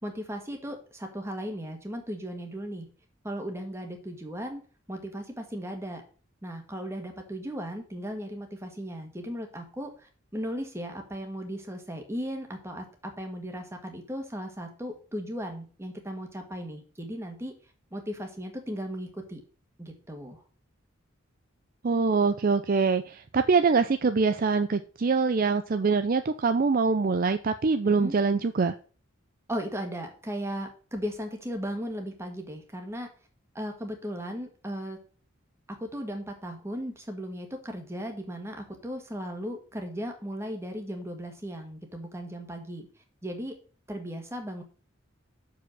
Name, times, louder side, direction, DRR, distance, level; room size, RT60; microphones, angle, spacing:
voice 1, 0.0-2.9 3.2-4.6 4.9-6.0 6.4-17.5 17.9-19.4 19.8-20.4 27.9-28.1 29.5-33.1 33.5-35.0 35.7-42.9 43.2-43.6 43.9-44.6, equal, 15° right, 4 dB, 1.6 m, -36 dB
voice 2, 21.8-28.7, right 4 dB, 45° right, 9 dB, 0.5 m, -24 dB
6.8 x 5.1 x 6.4 m, 0.39 s
head